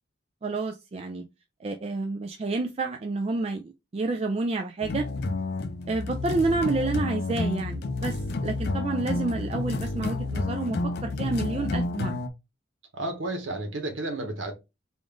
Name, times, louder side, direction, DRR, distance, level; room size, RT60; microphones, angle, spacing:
voice 1, 0.4-1.2 1.6-5.1 5.9-12.2, right 3 dB, 30° right, 0.3 m, -29 dB
sound 1, 4.8-12.3, left 2 dB, 55° left, 0.4 m, -30 dB
voice 2, 12.9-14.5, right 2 dB, 85° right, 1.0 m, -32 dB
3.6 x 2.5 x 3.5 m
head